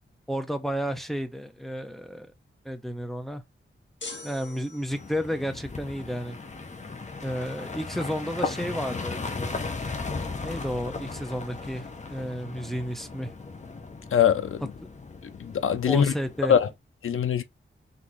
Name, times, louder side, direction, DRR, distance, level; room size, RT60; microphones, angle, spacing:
voice 1, 0.3-2.3 2.6-3.4 4.2-6.4 7.2-9.2 10.4-13.3 15.9-16.5, equal, ahead, 0.8 m, -32 dB
sound 1, 4.0-5.3, left 3 dB, 60° left, 1.5 m, -42 dB
sound 2, 4.9-16.7, left 3 dB, 35° left, 0.8 m, -36 dB
voice 2, 14.1-14.6 15.2-16.1 16.5-16.7 17.0-17.4, left 8 dB, 80° left, 0.6 m, -22 dB
4.2 x 3.3 x 3.1 m
wide cardioid pair, 115°, 21 cm